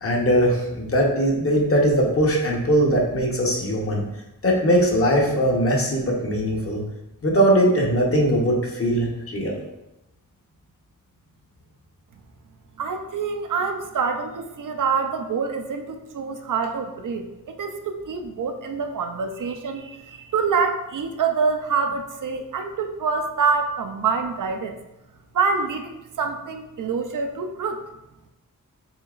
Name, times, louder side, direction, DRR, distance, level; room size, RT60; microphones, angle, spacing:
voice 1, 0.0-4.0 4.4-6.8 7.2-9.6, equal, 40° left, -1 dB, 0.9 m, -20 dB
voice 2, 12.8-24.8 25.3-27.8, right 5 dB, 65° right, 5 dB, 0.5 m, -26 dB
6.9 x 2.8 x 2.4 m, 0.93 s
wide cardioid pair, 150°, 34 cm